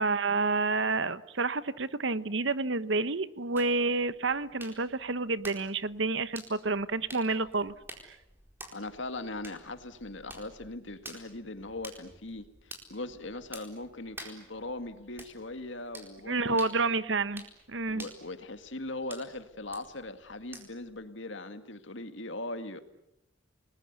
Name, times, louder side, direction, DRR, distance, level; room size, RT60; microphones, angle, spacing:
voice 1, 0.0-7.7 8.0-8.2 16.3-18.0, right 3 dB, 70° right, 15 dB, 1.0 m, -29 dB
sound 1, 3.6-20.9, right 1 dB, 10° right, 4.2 m, -51 dB
voice 2, 8.7-16.7 17.9-22.8, left 2 dB, 70° left, 9 dB, 2.1 m, -40 dB
29.5 x 20.5 x 8.2 m, 0.85 s
head